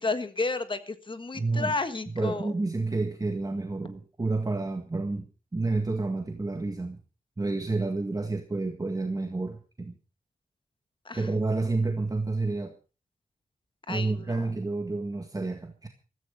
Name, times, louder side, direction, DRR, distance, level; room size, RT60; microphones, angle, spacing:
voice 1, 0.0-2.5 11.0-11.3 13.9-14.4, left 3 dB, 35° left, 1.5 m, -32 dB
voice 2, 1.4-1.7 2.1-5.3 5.5-7.0 7.4-9.9 11.1-12.7 13.9-15.9, right 3 dB, 25° right, 1.8 m, -29 dB
14.5 x 14.0 x 5.5 m
wide cardioid pair, 90°, 15 cm